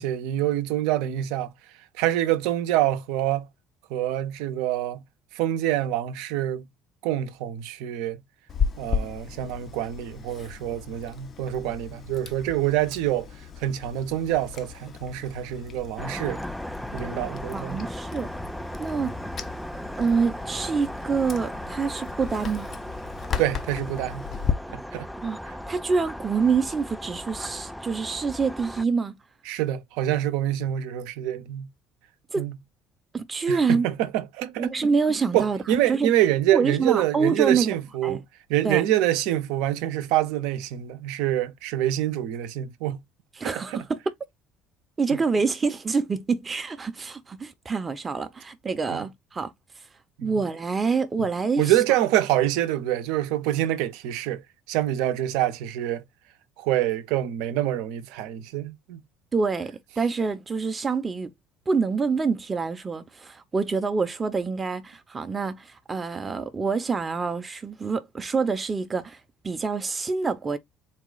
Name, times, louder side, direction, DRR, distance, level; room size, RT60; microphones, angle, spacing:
voice 1, 0.0-1.5 2.0-3.5 3.9-5.0 5.3-6.7 7.0-8.2 8.8-13.3 13.6-16.4 16.9-17.9 23.4-24.3 24.7-25.1 29.5-31.7 32.4-32.6 33.5-34.7 35.3-38.2 38.5-43.0 43.4-43.8 48.9-49.0 50.2-50.3 51.6-54.4 54.7-56.0 56.6-59.0, right 13 dB, 75° right, 0.7 m, -26 dB
Chewing mastication, 8.5-24.5, left 7 dB, 45° left, 0.8 m, -35 dB
sound 1, 16.0-28.8, equal, ahead, 0.4 m, -37 dB
voice 2, 17.5-18.3 18.8-19.1 20.0-22.7 25.2-25.4 25.7-29.1 32.3-32.5 33.1-33.9 34.6-35.6 35.9-36.1 36.5-37.8 38.0-38.2 38.6-38.8 43.3-44.0 45.0-49.8 50.2-51.8 59.3-61.3 61.7-70.6, right 5 dB, 30° right, 0.8 m, -26 dB
4.2 x 2.3 x 3.9 m
hypercardioid pair, 65°, 0 cm